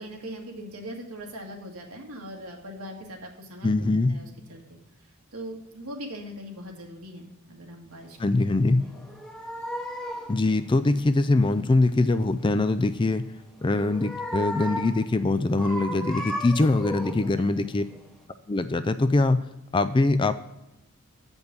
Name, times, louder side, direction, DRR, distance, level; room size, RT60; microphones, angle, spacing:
voice 1, 0.0-8.3 8.8-9.0 17.2-17.4 17.9-18.1, equal, 75° right, 1 dB, 1.8 m, -41 dB
voice 2, 3.6-4.1 8.2-8.8 10.3-13.2 13.6-17.8 18.5-19.4 19.7-20.4, left 2 dB, 20° left, 11 dB, 0.4 m, -23 dB
sound 1, 8.8-10.4 13.6-15.1 15.5-17.4 17.9-18.1, equal, ahead, 1.0 m, -35 dB
8.1 x 5.3 x 5.9 m, 0.89 s
head